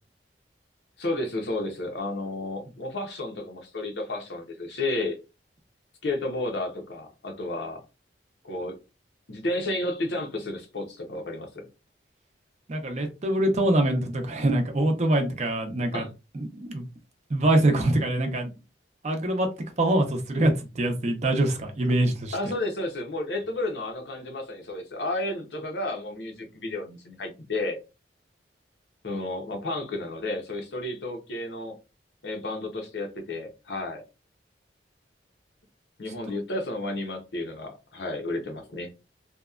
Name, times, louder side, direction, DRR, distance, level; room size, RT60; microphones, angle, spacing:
voice 1, 1.0-5.2 6.0-7.8 8.4-8.8 9.3-11.7 15.9-16.1 22.3-27.8 29.0-31.8 32.2-34.0 36.0-38.9, left 2 dB, 75° left, 0.8 m, -32 dB
voice 2, 12.7-16.1 16.3-16.9 17.3-18.5 19.0-19.5 19.8-22.4, right 1 dB, 40° right, 0.6 m, -24 dB
2.8 x 2.2 x 2.3 m
head